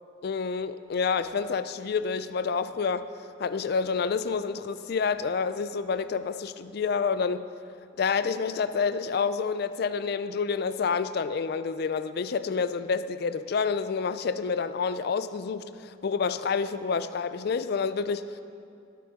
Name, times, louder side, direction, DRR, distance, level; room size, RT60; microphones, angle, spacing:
voice 1, 0.2-3.1 3.4-7.4 8.0-18.4, left 5 dB, 50° left, 13 dB, 0.4 m, -28 dB
14.0 x 12.0 x 3.7 m, 2.5 s
head